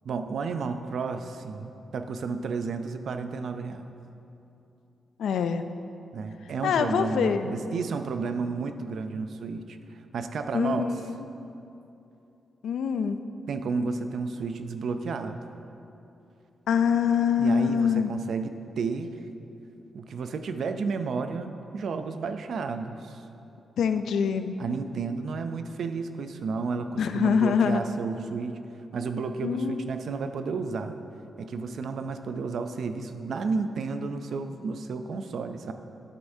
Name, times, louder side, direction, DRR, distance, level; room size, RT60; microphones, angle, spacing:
voice 1, 0.0-3.8 6.1-10.9 13.5-15.5 17.4-19.2 19.9-23.2 24.6-28.6 28.9-31.0 31.4-35.7, right 4 dB, 55° right, 8 dB, 0.4 m, -32 dB
voice 2, 5.2-5.6 6.6-7.5 10.5-11.3 12.6-13.2 16.7-18.1 23.8-24.6 27.0-27.8 29.4-29.9, left 7 dB, 80° left, 9 dB, 0.4 m, -25 dB
11.0 x 9.2 x 2.7 m, 2.8 s
wide cardioid pair, 175°, 0 cm